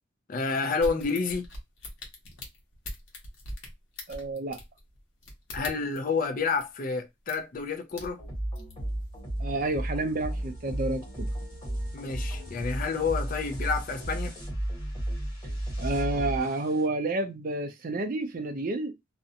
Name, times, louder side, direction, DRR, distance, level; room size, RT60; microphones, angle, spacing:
voice 1, 0.3-1.5 5.5-8.2 11.9-14.3, left 4 dB, 45° left, 0.4 m, -29 dB
sound 1, 0.8-6.1 6.6-6.7 7.3-7.6 7.9-8.7 9.1-9.2, left 1 dB, 85° left, 0.9 m, -41 dB
voice 2, 4.1-4.6 9.4-11.3 15.8-18.9, right 2 dB, 45° right, 0.5 m, -30 dB
sound 2, 8.2-16.9, right 1 dB, 25° left, 1.2 m, -34 dB
2.5 x 2.1 x 2.6 m
head